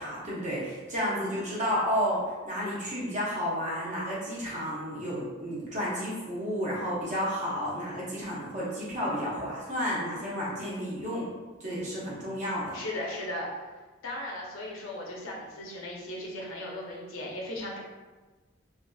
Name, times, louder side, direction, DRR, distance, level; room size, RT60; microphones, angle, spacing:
voice 1, 0.0-11.3 11.6-12.8, equal, 35° right, -6 dB, 0.8 m, -31 dB
voice 2, 12.7-13.5 14.0-17.8, left 1 dB, 85° left, -3 dB, 0.7 m, -37 dB
2.6 x 2.5 x 2.3 m, 1.3 s
head